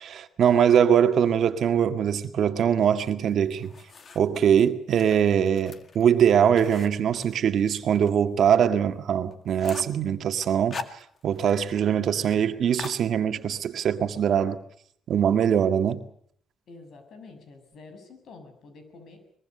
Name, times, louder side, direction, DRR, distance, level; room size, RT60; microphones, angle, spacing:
voice 1, 0.0-3.7 4.2-14.6 15.1-16.0, right 8 dB, 60° right, 1.8 m, -22 dB
sound 1, 3.3-4.4 4.9-8.1 8.5-8.6 8.9-9.0 9.3-10.0 10.4-11.5 11.8-11.9 12.2-12.4 12.8-13.6, left 4 dB, 40° left, 1.9 m, -41 dB
voice 2, 16.7-19.2, left 3 dB, 60° left, 7.4 m, -48 dB
24.0 x 22.0 x 6.8 m
cardioid pair, 135°, 0 cm